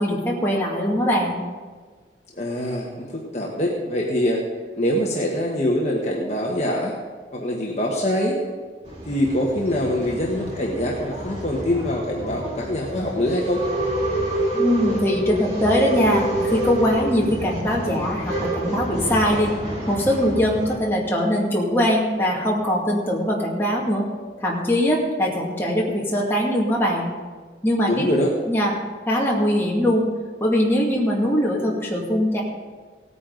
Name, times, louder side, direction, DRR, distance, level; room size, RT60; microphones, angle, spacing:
voice 1, 0.0-1.4 14.5-19.5 19.9-24.0 24.4-27.1 27.6-28.1 28.5-28.7 29.1-30.0 30.4-32.4, equal, 15° left, -4 dB, 2.1 m, -21 dB
voice 2, 2.3-3.1 3.3-4.4 4.8-6.9 7.3-8.4 9.1-13.6 27.9-28.3, left 1 dB, 40° left, -2 dB, 1.3 m, -24 dB
Male speech man speaking / Chatter / Rattle, 8.8-20.8, right 1 dB, 35° right, 2.8 m, -28 dB
17.0 x 9.5 x 3.9 m, 1.5 s
head